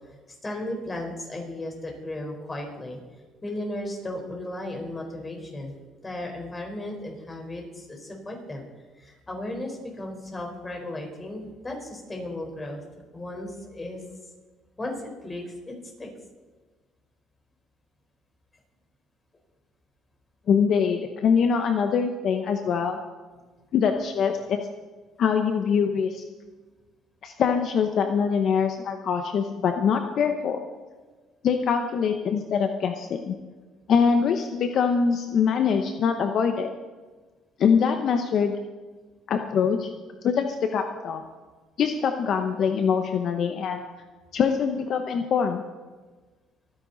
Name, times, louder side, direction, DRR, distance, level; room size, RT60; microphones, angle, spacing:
voice 1, 0.4-3.0 3.4-5.7 6.0-8.6 9.0-12.8 13.1-14.0 14.8-16.1, left 1 dB, 20° left, 1 dB, 4.4 m, -35 dB
voice 2, 20.5-23.0 23.7-24.7 25.2-26.2 27.2-30.6 31.4-33.3 33.9-36.7 37.6-38.6 39.3-39.9 40.2-41.2 41.8-43.8 44.3-45.6, left 6 dB, 55° left, 6 dB, 1.0 m, -23 dB
25.0 x 9.9 x 4.1 m, 1.3 s
cardioid pair, 110°, 0 cm